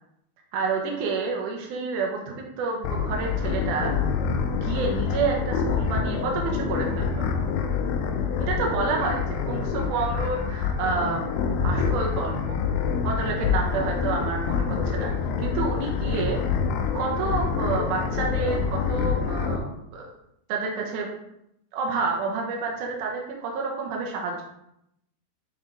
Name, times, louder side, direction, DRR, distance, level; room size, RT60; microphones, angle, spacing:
voice 1, 0.5-3.9 4.6-7.3 8.4-12.6 13.0-15.1 15.4-16.4 16.9-20.1 20.5-21.1 21.7-24.4, right 4 dB, 80° right, -1 dB, 1.8 m, -29 dB
sound 1, 2.8-19.6, left 6 dB, 80° left, 2.6 m, -26 dB
9.6 x 3.8 x 3.5 m, 0.80 s
omnidirectional pair, 5.0 m